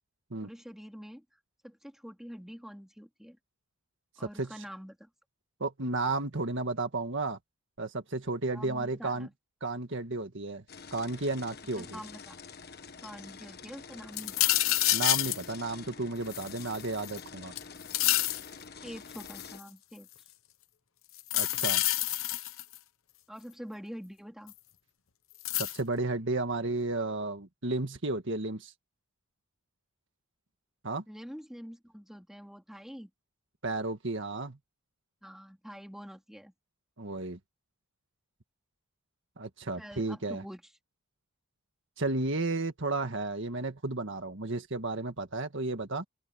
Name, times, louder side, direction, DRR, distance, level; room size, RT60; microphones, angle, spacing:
voice 1, 0.4-1.2 1.6-3.4 4.2-5.1 8.5-9.3 11.7-12.4 13.0-14.5 18.8-20.1 23.3-24.5 31.1-33.1 35.2-36.5 39.8-40.6, equal, ahead, 3.3 m, -46 dB
voice 2, 5.6-7.4 7.8-9.3 9.6-10.6 10.9-12.0 14.9-17.5 21.3-21.8 25.5-28.7 30.8-31.0 33.6-34.6 37.0-37.4 39.4-40.4 42.0-46.1, right 2 dB, 55° right, 1.8 m, -33 dB
sound 1, 10.7-19.6, left 5 dB, 45° left, 1.4 m, -47 dB
sound 2, 14.2-15.4 16.3-17.2 17.6-18.5 19.1-19.6 21.2-22.8 24.5-24.6 25.4-25.8, left 15 dB, 65° left, 1.0 m, -28 dB
open air
head